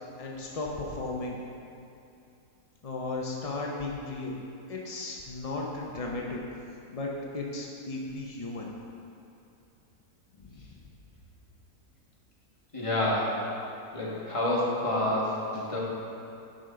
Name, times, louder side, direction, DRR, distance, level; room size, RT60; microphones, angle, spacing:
voice 1, 0.2-1.4 2.8-4.4 4.7-6.4 6.9-8.7 10.4-10.7, left 2 dB, 60° left, -2 dB, 0.3 m, -35 dB
voice 2, 12.7-13.4 13.9-15.8, left 1 dB, 20° left, -6 dB, 1.4 m, -28 dB
11.0 x 5.2 x 3.8 m, 2.7 s
omnidirectional pair, 1.6 m